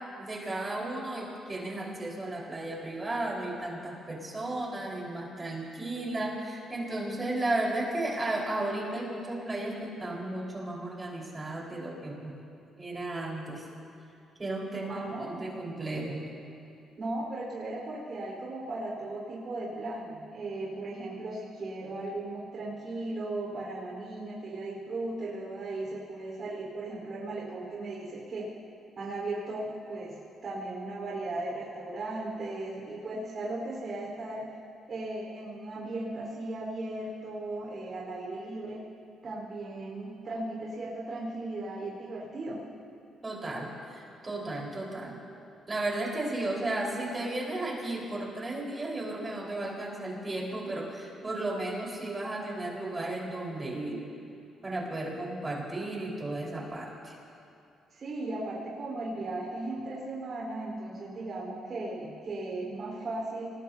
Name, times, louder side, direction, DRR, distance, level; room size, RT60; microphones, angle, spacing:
voice 1, 0.2-12.4 12.8-13.6 14.4-16.2 43.2-45.2 45.7-54.0 54.6-57.1, right 2 dB, 25° right, -3 dB, 4.8 m, -34 dB
voice 2, 14.9-15.5 17.0-28.5 29.0-34.5 34.9-38.8 39.2-42.6 57.9-63.5, right 2 dB, 50° right, -4 dB, 4.5 m, -37 dB
25.0 x 20.0 x 2.9 m, 2.6 s
cardioid pair, 90°, 0 cm